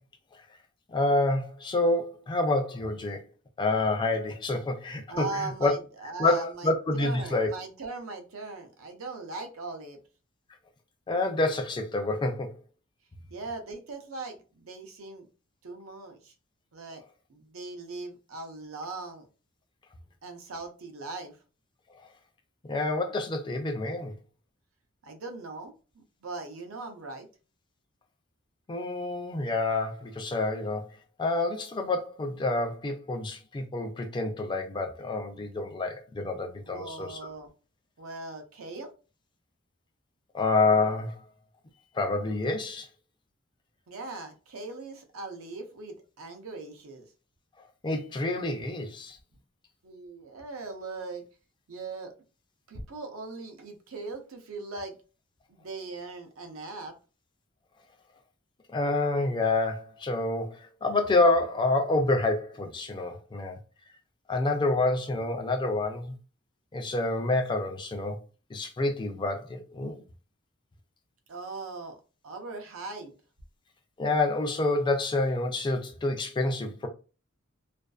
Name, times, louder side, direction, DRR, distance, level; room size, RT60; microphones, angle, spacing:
voice 1, 0.9-3.2 3.6-5.7 6.2-7.5 11.1-12.5 22.6-24.1 28.7-30.9 31.2-37.3 40.3-41.2 41.9-42.9 47.8-49.2 58.7-63.6 64.3-66.1 66.7-68.2 68.5-70.0 74.0-76.9, left 2 dB, 25° left, 0.3 m, -28 dB
voice 2, 5.1-10.0 13.3-15.3 15.6-16.3 16.7-17.0 17.3-19.3 20.2-21.4 25.0-27.3 36.7-37.5 38.0-38.9 43.9-47.1 49.8-51.2 51.7-52.1 52.7-55.0 55.5-56.9 71.3-72.0 72.2-73.1, right 3 dB, 85° right, 0.6 m, -40 dB
2.5 x 2.3 x 2.3 m
head